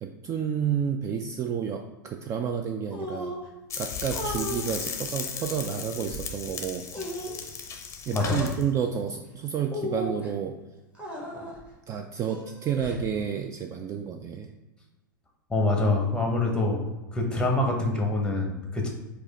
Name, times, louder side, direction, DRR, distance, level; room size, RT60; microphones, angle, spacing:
voice 1, 0.0-3.4 3.8-6.9 8.1-10.6 11.9-14.5, right 7 dB, 30° right, 5 dB, 0.3 m, -30 dB
sound 1, 2.9-3.5 4.1-4.6 5.3-6.2 6.9-7.4 8.2-8.6 9.7-10.3 10.9-11.6 12.3-13.1, left 1 dB, 10° right, 1.4 m, -36 dB
sound 2, 3.7-8.6, left 6 dB, 25° left, 0.7 m, -36 dB
voice 2, 15.5-16.8 17.1-18.9, left 2 dB, 10° left, 1 dB, 1.0 m, -25 dB
4.7 x 2.4 x 4.1 m, 1.1 s
figure-of-eight pair, 90°, 11 cm